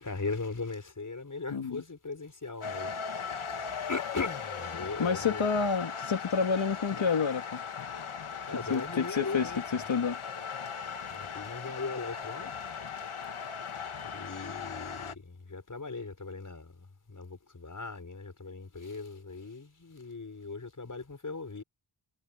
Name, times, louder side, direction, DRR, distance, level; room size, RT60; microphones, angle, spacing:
voice 1, 0.0-2.9 3.2-5.5 8.5-9.8 11.1-12.5 14.0-21.6, left 4 dB, 40° left, 5.2 m, -39 dB
voice 2, 1.5-1.8 5.0-7.6 8.7-10.2, left 5 dB, 65° left, 2.3 m, -29 dB
sound 1, 2.6-15.1, left 6 dB, 85° left, 1.7 m, -38 dB
wide cardioid pair, 125°, 48 cm